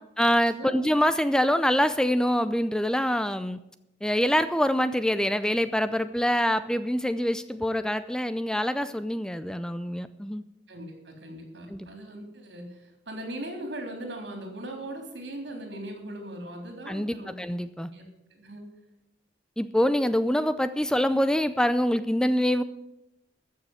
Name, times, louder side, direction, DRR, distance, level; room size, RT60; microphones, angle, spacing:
voice 1, 0.2-3.6 4.0-10.4 11.7-11.9 16.9-17.9 19.6-22.6, equal, 5° left, 12 dB, 0.4 m, -25 dB
voice 2, 10.7-12.8 13.1-17.5 17.9-18.0 18.3-18.7, right 1 dB, 80° right, 2 dB, 3.7 m, -39 dB
14.0 x 6.6 x 8.0 m, 0.87 s
head